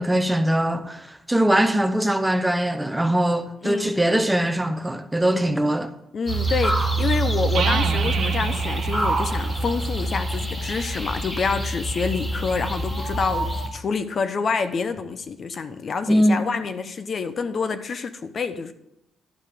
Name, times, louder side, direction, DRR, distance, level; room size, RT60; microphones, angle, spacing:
voice 1, 0.0-5.9 16.1-16.4, right 1 dB, 10° right, 0.6 m, -21 dB
voice 2, 3.6-4.2 5.3-5.7 6.1-18.7, left 5 dB, 45° left, 0.6 m, -27 dB
sound 1, 6.3-13.7, right 2 dB, 10° left, 2.0 m, -25 dB
sound 2, 7.5-11.2, right 6 dB, 70° right, 1.1 m, -31 dB
11.5 x 5.4 x 5.0 m
cardioid pair, 120°, 0 cm